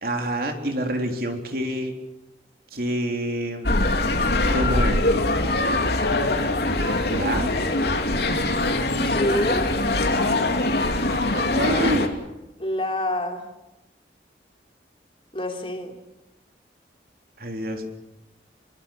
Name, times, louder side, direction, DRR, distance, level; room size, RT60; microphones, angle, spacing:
voice 1, 0.0-1.9 2.7-3.8 4.5-5.1 7.1-7.6 7.9-8.4 11.3-12.1 17.4-17.9, equal, 55° right, 4 dB, 3.7 m, -27 dB
sound 1, 3.6-12.1, left 2 dB, 65° left, 2.8 m, -22 dB
voice 2, 9.0-9.7 12.6-13.5 15.3-16.0, left 1 dB, 30° left, 3 dB, 3.3 m, -27 dB
27.5 x 22.5 x 7.3 m, 0.94 s
head